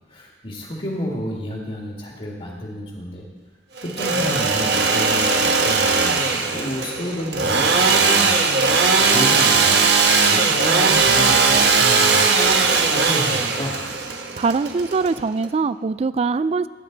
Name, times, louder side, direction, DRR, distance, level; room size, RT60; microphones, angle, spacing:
voice 1, 0.1-3.3 3.8-8.4 8.7-13.8, equal, 40° left, -2 dB, 1.9 m, -31 dB
Engine / Sawing, 3.8-15.5, right 4 dB, 65° right, 1.1 m, -18 dB
voice 2, 14.4-16.7, right 4 dB, 35° right, 16 dB, 0.3 m, -22 dB
17.0 x 9.5 x 4.0 m, 1.4 s
head